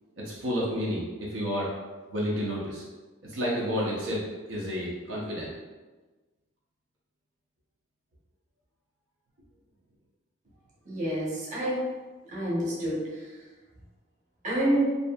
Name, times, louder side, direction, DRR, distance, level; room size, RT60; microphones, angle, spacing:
voice 1, 0.2-1.7 2.1-2.8 3.2-4.2 4.5-5.5, equal, 80° right, -5 dB, 0.6 m, -30 dB
voice 2, 10.8-11.8 12.3-13.3 14.4-14.9, right 1 dB, 40° right, -7 dB, 0.8 m, -28 dB
2.6 x 2.5 x 2.2 m, 1.3 s
head